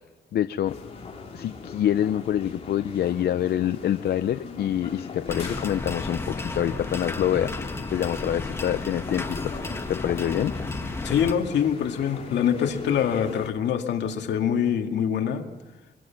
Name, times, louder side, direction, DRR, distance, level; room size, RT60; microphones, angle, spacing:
voice 1, 0.3-0.8 1.3-7.5 7.9-9.5 9.9-10.5, left 11 dB, 65° left, 11 dB, 0.6 m, -26 dB
sound 1, 0.7-13.5, left 4 dB, 35° left, 3.4 m, -39 dB
sound 2, 5.3-11.3, left 2 dB, 15° left, 1.5 m, -33 dB
voice 2, 11.0-15.5, left 8 dB, 80° left, 4 dB, 2.1 m, -24 dB
24.0 x 23.5 x 5.9 m, 1.2 s
cardioid pair, 130°, 18 cm